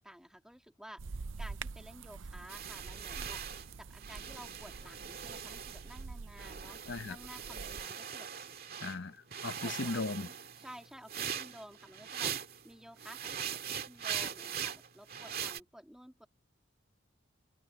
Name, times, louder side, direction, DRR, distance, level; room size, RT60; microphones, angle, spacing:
voice 1, 0.0-3.4 3.8-8.3 9.6-16.3, equal, 5° right, 2.0 m, -53 dB
sound 1, 1.0-7.9, right 4 dB, 60° right, 0.6 m, -46 dB
sound 2, 2.5-6.1 6.4-9.0 9.3-12.6 13.0-15.6, right 8 dB, 45° right, 2.2 m, -41 dB
voice 2, 6.9-7.2 8.8-10.3, left 3 dB, 55° left, 0.8 m, -37 dB
head